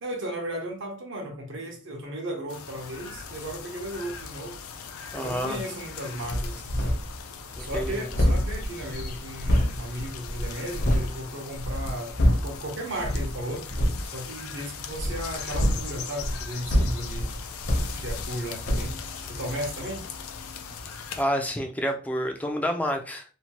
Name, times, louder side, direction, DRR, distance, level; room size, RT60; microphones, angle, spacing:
voice 1, 0.0-4.6 5.1-7.0 7.6-12.1 12.4-13.7 14.0-17.3 18.0-18.9 19.2-20.0, right 1 dB, 60° right, 0.8 m, -35 dB
sound 1, 2.5-21.2, left 6 dB, 85° left, 0.4 m, -40 dB
voice 2, 5.1-5.6 7.6-8.1 21.2-23.2, equal, 5° left, 0.4 m, -28 dB
sound 2, 6.2-7.2 7.5-11.1 11.5-12.6 13.0-13.3 13.7-14.1 14.9-18.4 18.6-19.0, equal, 55° left, 0.8 m, -26 dB
2.8 x 2.2 x 2.9 m
head